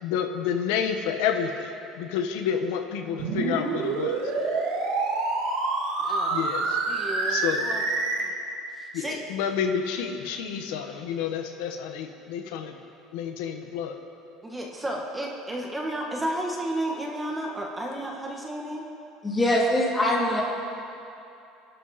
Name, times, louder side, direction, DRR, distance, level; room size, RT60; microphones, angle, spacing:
voice 1, 0.0-4.2 6.3-6.8 7.3-7.6 8.9-12.7 13.1-14.0, left 7 dB, 85° left, 5 dB, 1.4 m, -29 dB
sound 1, 3.2-8.2, right 3 dB, 75° right, 3.1 m, -27 dB
voice 2, 6.0-6.5 6.8-7.8 8.2-8.3 8.7-9.2 14.4-18.9, right 1 dB, 10° right, -1 dB, 1.5 m, -32 dB
voice 3, 19.2-20.4, left 1 dB, 10° left, -4 dB, 3.1 m, -23 dB
26.5 x 12.0 x 4.3 m, 2.6 s
cardioid pair, 165°, 0 cm